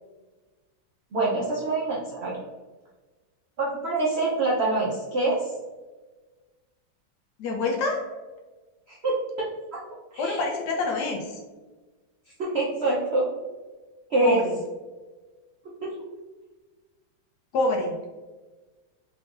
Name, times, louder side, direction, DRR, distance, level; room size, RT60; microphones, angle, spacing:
voice 1, 1.1-2.4 3.6-5.5 8.9-9.8 10.1-10.4 12.4-13.2 14.1-14.4 15.8-15.9, right 2 dB, 85° right, -5 dB, 0.5 m, -25 dB
voice 2, 7.4-8.1 10.2-11.4 14.2-14.5 17.5-17.9, left 3 dB, 70° left, 1 dB, 1.0 m, -26 dB
3.8 x 3.7 x 2.5 m, 1.2 s
omnidirectional pair, 2.1 m